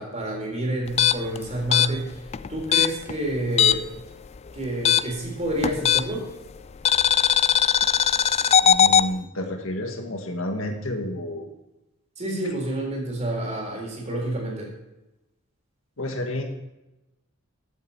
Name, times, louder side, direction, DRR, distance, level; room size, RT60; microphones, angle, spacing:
voice 1, 0.0-2.1 2.5-3.9 4.5-6.3 12.2-14.7, right 1 dB, 35° right, 0 dB, 3.9 m, -28 dB
sound 1, 0.9-4.0 4.3-6.3 6.9-9.1, left 8 dB, 30° left, 0.3 m, -20 dB
voice 2, 8.6-11.5 16.0-16.4, left 1 dB, 75° left, 4 dB, 1.8 m, -30 dB
14.5 x 8.0 x 4.3 m, 0.99 s
head